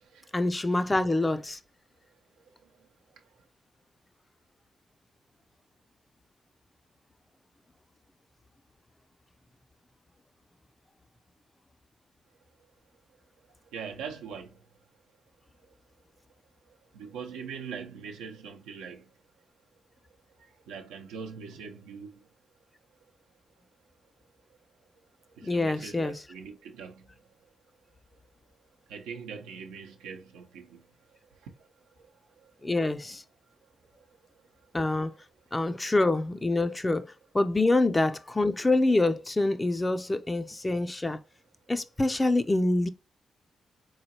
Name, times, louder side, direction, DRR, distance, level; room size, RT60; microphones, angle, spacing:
voice 1, 0.3-1.6 25.4-26.2 32.6-33.2 34.7-35.1 35.5-37.1 37.3-41.2 41.7-42.9, left 2 dB, 25° left, 0.4 m, -26 dB
voice 2, 13.7-14.5 16.9-19.0 20.7-22.1 25.5-27.0 28.9-30.8, right 6 dB, 90° right, 0.6 m, -41 dB
3.8 x 3.1 x 2.8 m
supercardioid pair, 45°, 0 cm